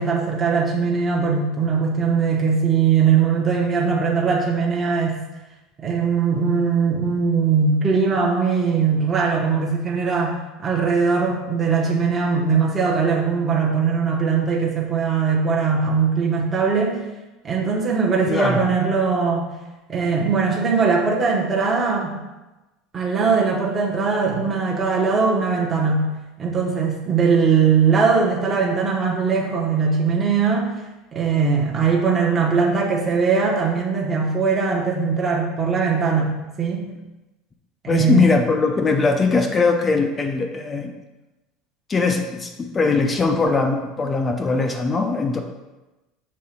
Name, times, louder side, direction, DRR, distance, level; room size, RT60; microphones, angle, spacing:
voice 1, 0.0-5.2 5.8-17.0 17.4-19.5 19.9-22.2 22.9-26.1 26.4-30.8 31.1-36.9 37.8-38.3, right 5 dB, 20° right, -2 dB, 0.9 m, -20 dB
voice 2, 18.3-18.6 37.9-40.9 41.9-45.4, left 4 dB, 15° left, 5 dB, 0.5 m, -20 dB
6.5 x 3.7 x 5.7 m, 1.1 s
cardioid pair, 170°, 0 cm